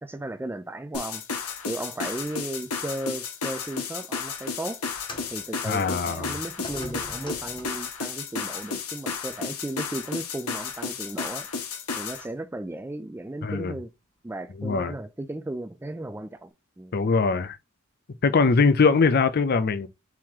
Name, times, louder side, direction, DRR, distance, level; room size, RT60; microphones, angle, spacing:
voice 1, 0.0-1.2 1.6-4.8 5.3-11.5 12.0-13.9 14.2-17.0, right 1 dB, 10° right, 0.3 m, -35 dB
sound 1, 0.9-12.2, left 5 dB, 85° left, 0.9 m, -33 dB
sound 2, 4.9-8.0 9.0-9.1 10.0-10.1, left 1 dB, 20° left, 0.9 m, -43 dB
voice 2, 5.7-6.4 13.4-13.8 14.6-14.9 16.9-17.6 18.2-19.9, left 4 dB, 45° left, 0.5 m, -22 dB
4.6 x 2.9 x 3.7 m
head